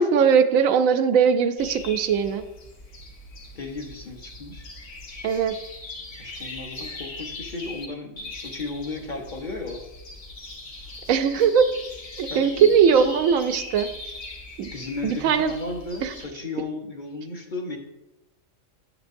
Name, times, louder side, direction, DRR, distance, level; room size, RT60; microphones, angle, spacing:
voice 1, 0.0-2.4 5.2-5.5 11.1-11.7 12.2-13.9 14.6-14.7 15.0-15.5 16.0-16.1, right 7 dB, 90° right, 9 dB, 1.0 m, -20 dB
sound 1, 1.6-7.9 8.2-16.3, left 2 dB, 70° left, 1.6 m, -40 dB
voice 2, 3.5-4.7 6.2-9.8 12.2-12.7 14.7-17.8, left 3 dB, 40° left, 3 dB, 0.9 m, -35 dB
8.1 x 7.9 x 2.6 m, 0.95 s
omnidirectional pair, 1.4 m